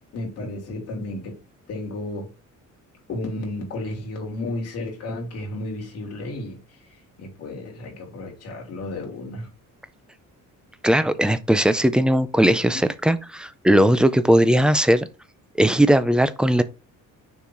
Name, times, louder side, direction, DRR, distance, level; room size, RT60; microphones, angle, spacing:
voice 1, 0.1-1.4 1.7-2.3 3.1-6.6 7.2-9.5, left 2 dB, 50° left, 3.4 m, -32 dB
voice 2, 10.8-15.1 15.6-16.6, right 1 dB, 5° right, 0.4 m, -18 dB
6.8 x 4.7 x 3.9 m
cardioid pair, 175°, 31 cm